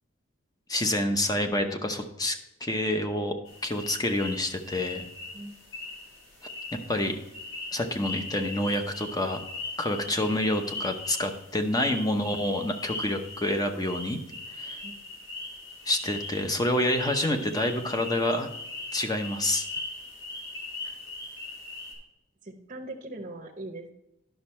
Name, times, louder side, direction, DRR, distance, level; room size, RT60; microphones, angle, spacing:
voice 1, 0.7-3.4 3.6-5.0 6.9-7.2 7.7-9.4 9.8-14.2 14.5-14.8 15.8-18.5 18.9-19.7, left 1 dB, 20° left, 6 dB, 0.8 m, -28 dB
sound 1, 3.4-21.9, left 2 dB, 75° left, 3.5 m, -40 dB
voice 2, 22.4-23.9, right 2 dB, 35° right, 3 dB, 0.8 m, -40 dB
10.5 x 6.2 x 4.4 m, 0.92 s
head